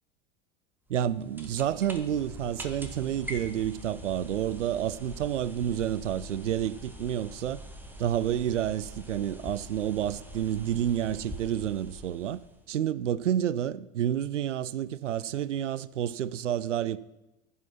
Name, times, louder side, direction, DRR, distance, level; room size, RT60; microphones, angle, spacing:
sound 1, 0.9-12.7, equal, 5° right, 1.5 m, -44 dB
voice 1, 0.9-7.6 8.0-12.4 12.7-17.0, right 10 dB, 75° right, 0.5 m, -29 dB
15.0 x 5.6 x 6.0 m
figure-of-eight pair, 75°, 36 cm